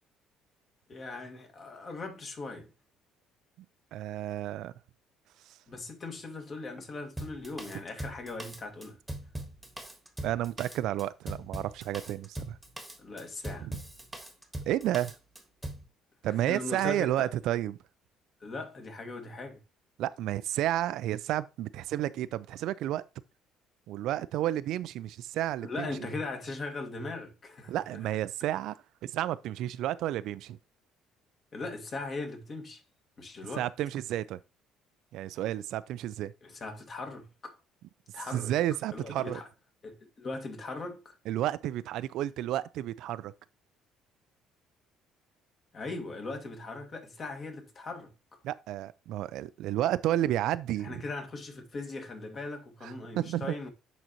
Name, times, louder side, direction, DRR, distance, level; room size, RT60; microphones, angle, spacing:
voice 1, 0.9-2.7 5.7-9.0 13.0-13.7 16.5-17.3 18.4-19.6 25.6-28.0 31.5-32.8 33.2-33.7 36.4-37.6 38.1-38.5 38.9-39.5 39.8-41.2 45.7-48.1 50.8-53.7, left 3 dB, 35° left, 1.8 m, -39 dB
voice 2, 3.9-4.7 10.2-12.6 13.6-13.8 14.7-15.2 16.2-17.8 20.0-23.0 23.9-25.9 27.7-28.8 29.0-30.6 33.6-34.4 35.1-36.3 38.3-39.4 41.3-43.3 48.4-51.0 52.8-53.5, right 13 dB, 70° right, 0.4 m, -31 dB
Drum kit, 7.2-15.9, right 1 dB, 5° right, 1.4 m, -41 dB
10.5 x 3.9 x 2.9 m
cardioid pair, 110°, 0 cm